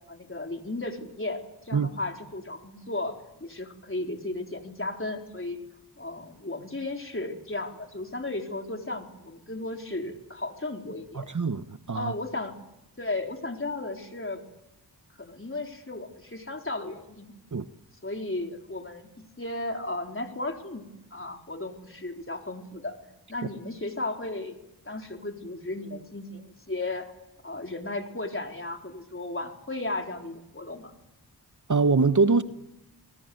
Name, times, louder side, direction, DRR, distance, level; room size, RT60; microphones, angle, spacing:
voice 1, 0.1-5.6 6.0-11.3 11.9-12.5 13.0-14.4 15.2-17.4 18.0-19.1 19.4-22.9 23.3-24.6 24.9-27.1 27.4-31.0, left 2 dB, 30° left, 4.2 m, -35 dB
voice 2, 11.1-12.1 17.5-17.6 31.7-32.4, right 4 dB, 45° right, 1.1 m, -23 dB
26.5 x 20.0 x 8.0 m
cardioid pair, 40°, 42 cm